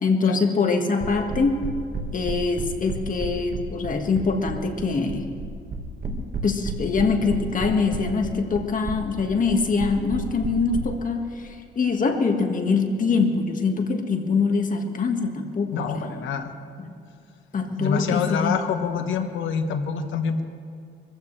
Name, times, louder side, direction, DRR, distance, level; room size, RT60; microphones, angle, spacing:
voice 1, 0.0-1.7 2.1-5.3 6.1-16.2 16.8-16.9 17.5-18.7, left 4 dB, 40° left, 4 dB, 1.9 m, -24 dB
sound 1, 1.0-10.8, right 5 dB, 45° right, 1.8 m, -31 dB
voice 2, 15.7-16.5 17.7-20.4, left 6 dB, 75° left, 7 dB, 1.3 m, -26 dB
24.0 x 15.0 x 3.4 m, 2.3 s
cardioid pair, 90°, 20 cm